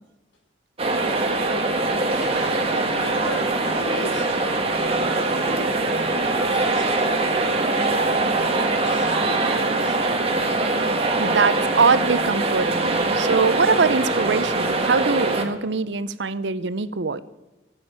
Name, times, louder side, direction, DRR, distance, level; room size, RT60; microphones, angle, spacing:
sound 1, 0.8-15.4, right 2 dB, 35° right, 1.6 m, -22 dB
voice 1, 2.0-10.4, equal, 90° left, -2 dB, 4.3 m, -38 dB
voice 2, 11.2-17.2, right 4 dB, 75° right, 15 dB, 0.7 m, -22 dB
15.0 x 7.8 x 9.0 m, 1.1 s
head